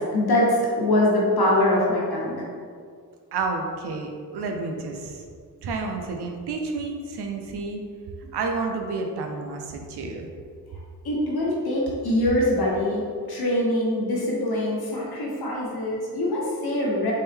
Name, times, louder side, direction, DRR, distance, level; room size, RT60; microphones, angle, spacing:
voice 1, 0.0-2.4 11.0-13.0 13.3-17.1, left 1 dB, 70° left, -4 dB, 1.3 m, -23 dB
voice 2, 3.3-5.2 5.6-7.8 8.3-10.2, right 3 dB, 85° right, 3 dB, 0.6 m, -30 dB
4.2 x 3.6 x 3.4 m, 2.1 s
cardioid pair, 40°, 39 cm